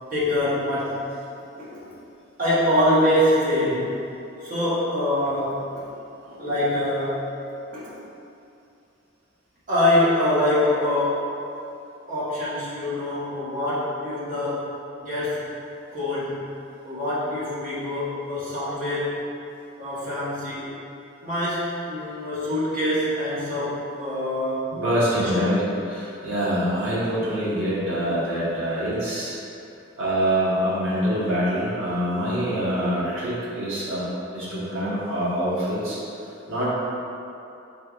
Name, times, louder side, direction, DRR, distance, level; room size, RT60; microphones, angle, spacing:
voice 1, 0.1-1.1 1.6-1.9 2.4-4.0 4.4-5.8 6.4-7.3 7.7-8.0 9.7-11.3 12.1-15.4 15.9-16.5 16.8-19.2 19.8-20.7 21.2-24.6 25.1-25.5, left 1 dB, 45° right, -10 dB, 1.2 m, -24 dB
voice 2, 24.7-29.4 30.0-36.0 36.5-36.7, equal, 85° right, -9 dB, 1.3 m, -25 dB
4.4 x 3.4 x 2.4 m, 2.7 s
head